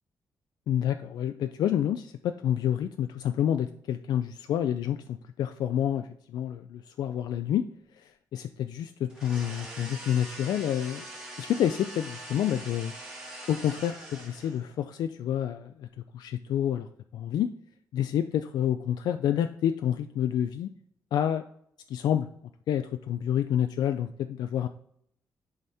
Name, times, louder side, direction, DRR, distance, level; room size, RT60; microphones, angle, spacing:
voice 1, 0.7-7.6 8.0-11.0 11.4-12.9 13.5-15.9 16.1-16.9 17.1-17.5 17.9-20.7 21.1-21.4 21.9-22.3 22.7-24.7, left 10 dB, 85° left, 8 dB, 0.4 m, -28 dB
sound 1, 9.1-14.7, right 1 dB, 10° right, 1.5 m, -43 dB
10.5 x 4.3 x 3.4 m, 0.69 s
wide cardioid pair, 165°, 7 cm